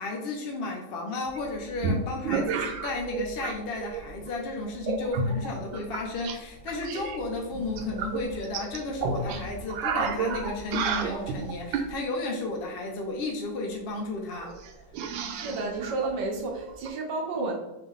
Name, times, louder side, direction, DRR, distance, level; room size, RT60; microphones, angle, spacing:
voice 1, 0.0-14.5 17.4-17.5, left 2 dB, 85° left, 0 dB, 0.5 m, -33 dB
sound 1, 1.4-3.5 3.8-4.3 4.8-6.4 6.7-11.9 13.6-13.7 13.9-14.0 14.4-16.9, right 4 dB, 90° right, 1.3 m, -31 dB
voice 2, 15.3-17.6, right 3 dB, 70° right, 1 dB, 1.4 m, -31 dB
3.5 x 3.3 x 3.6 m, 0.97 s
omnidirectional pair, 2.1 m